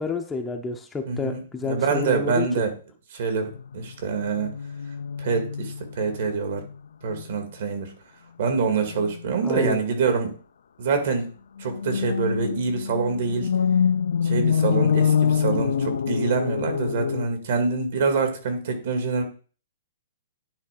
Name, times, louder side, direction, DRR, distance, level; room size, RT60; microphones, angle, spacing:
voice 1, 0.0-2.5 9.4-9.8, left 5 dB, 10° left, 4 dB, 0.6 m, -29 dB
voice 2, 1.1-2.7 3.1-4.5 5.2-6.6 7.0-7.9 8.4-10.3 10.8-11.3 11.6-13.5 14.2-19.2, right 5 dB, 60° right, 5 dB, 1.9 m, -25 dB
sound 1, 3.5-6.3 6.6-6.8 7.1-7.4 8.8-9.2 11.6-17.3, left 7 dB, 85° left, 0.4 m, -25 dB
9.9 x 3.3 x 5.0 m, 0.39 s
hypercardioid pair, 160°, 0 cm